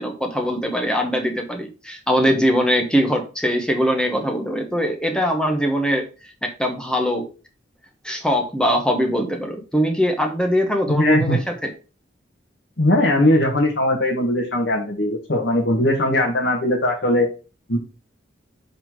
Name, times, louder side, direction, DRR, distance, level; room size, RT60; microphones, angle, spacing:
voice 1, 0.0-6.0 6.4-7.2 8.0-11.7, equal, 5° left, 3 dB, 1.1 m, -21 dB
voice 2, 10.9-11.4 12.8-17.3 17.7-17.8, left 1 dB, 60° left, -2 dB, 1.5 m, -19 dB
6.7 x 4.1 x 4.6 m, 0.33 s
head